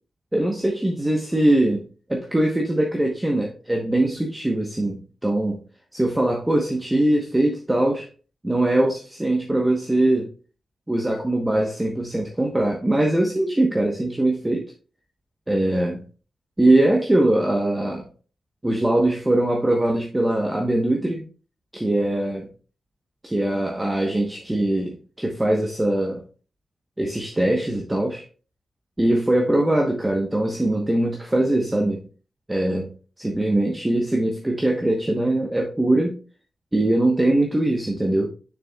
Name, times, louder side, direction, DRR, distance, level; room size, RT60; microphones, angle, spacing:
voice 1, 0.3-1.8 2.1-5.6 5.9-8.1 8.4-10.3 10.9-14.7 15.5-16.0 16.6-18.0 18.6-21.2 21.7-22.5 23.2-26.2 27.0-28.2 29.0-32.0 32.5-32.9 33.2-36.1 36.7-38.3, right 1 dB, 10° right, 1.0 m, -21 dB
7.0 x 6.7 x 2.3 m
wide cardioid pair, 155°, 0 cm